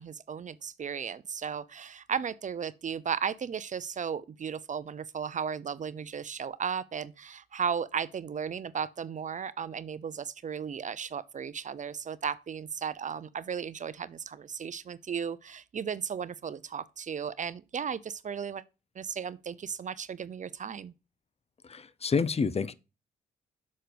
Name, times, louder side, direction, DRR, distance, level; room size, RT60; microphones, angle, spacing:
voice 1, 0.0-18.6 19.0-20.9, right 7 dB, 40° right, 0.6 m, -35 dB
voice 2, 21.6-22.7, left 5 dB, 35° left, 0.6 m, -28 dB
6.4 x 5.7 x 5.1 m
hypercardioid pair, 45°, 19 cm